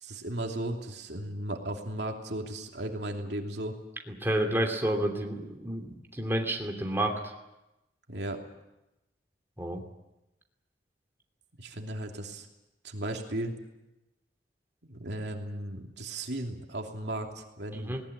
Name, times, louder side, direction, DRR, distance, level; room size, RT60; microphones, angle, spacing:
voice 1, 0.0-3.8 8.1-8.4 11.6-12.5 12.8-13.5 14.8-18.0, right 1 dB, 70° right, 2 dB, 3.0 m, -36 dB
voice 2, 4.2-7.3 9.6-9.8 17.7-18.0, right 1 dB, 15° right, 2 dB, 3.0 m, -30 dB
19.5 x 19.0 x 10.0 m, 0.95 s
head